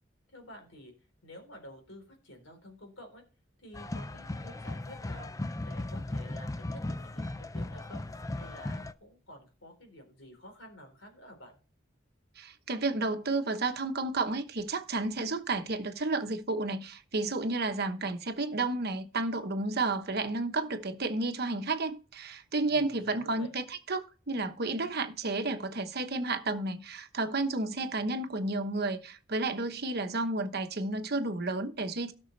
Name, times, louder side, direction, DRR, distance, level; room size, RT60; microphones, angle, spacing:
voice 1, 0.3-0.9 1.2-3.2 3.6-8.0 8.3-11.6 22.7-23.5, left 1 dB, 80° left, 3.8 m, -50 dB
sound 1, 3.7-8.9, left 2 dB, 15° left, 0.4 m, -37 dB
voice 2, 12.4-32.1, right 2 dB, 55° right, 1.1 m, -32 dB
17.0 x 6.3 x 3.3 m
head